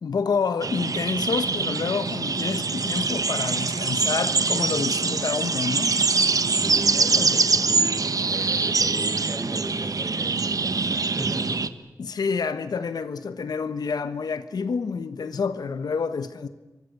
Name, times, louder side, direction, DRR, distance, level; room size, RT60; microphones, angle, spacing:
voice 1, 0.0-5.9 7.2-7.4 12.0-16.5, left 5 dB, 90° left, 1.3 m, -28 dB
sound 1, 0.6-11.7, right 4 dB, 65° right, 1.2 m, -24 dB
voice 2, 6.6-8.0 8.2-11.6, right 1 dB, 20° right, 7.2 m, -36 dB
28.0 x 24.0 x 6.8 m
cardioid pair, 45°, 7 cm